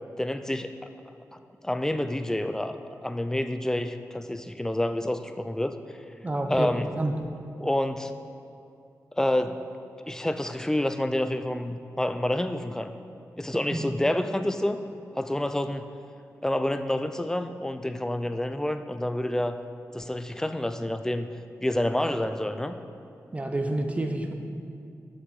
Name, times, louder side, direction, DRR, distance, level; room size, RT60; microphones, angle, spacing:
voice 1, 0.2-0.7 1.6-5.8 6.5-6.9 7.6-8.1 9.1-9.7 10.1-12.9 13.4-14.8 15.1-15.9 16.4-19.6 19.9-21.3 21.6-22.8, left 1 dB, 10° left, 9 dB, 0.5 m, -28 dB
voice 2, 6.2-6.7 7.0-7.2 13.5-13.9 23.3-24.3, right 1 dB, 20° right, 4 dB, 0.8 m, -29 dB
7.9 x 6.5 x 7.0 m, 2.5 s
wide cardioid pair, 95°, 6 cm